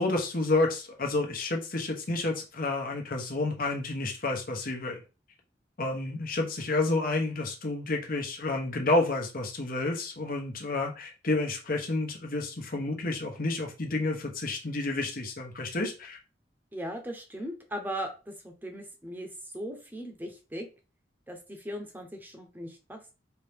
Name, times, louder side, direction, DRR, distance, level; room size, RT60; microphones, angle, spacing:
voice 1, 0.0-5.0 5.8-16.2, left 2 dB, 55° left, 2 dB, 1.1 m, -30 dB
voice 2, 16.7-19.3 19.5-20.7 21.3-23.1, equal, 10° right, 4 dB, 0.9 m, -38 dB
4.6 x 2.9 x 3.5 m, 0.32 s
head